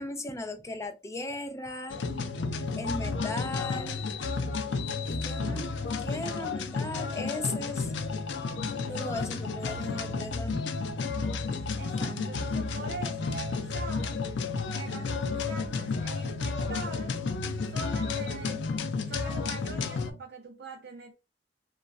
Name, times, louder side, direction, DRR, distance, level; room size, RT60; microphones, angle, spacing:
voice 1, 0.0-2.0 2.8-4.0 5.1-5.7 6.0-7.9 8.9-10.6, left 2 dB, 15° left, 0.4 m, -37 dB
sound 1, 1.9-20.1, left 4 dB, 90° left, 0.4 m, -32 dB
voice 2, 11.8-14.2 14.7-17.2 17.6-18.6 19.1-21.1, right 3 dB, 65° right, 0.5 m, -42 dB
3.0 x 2.2 x 2.3 m
head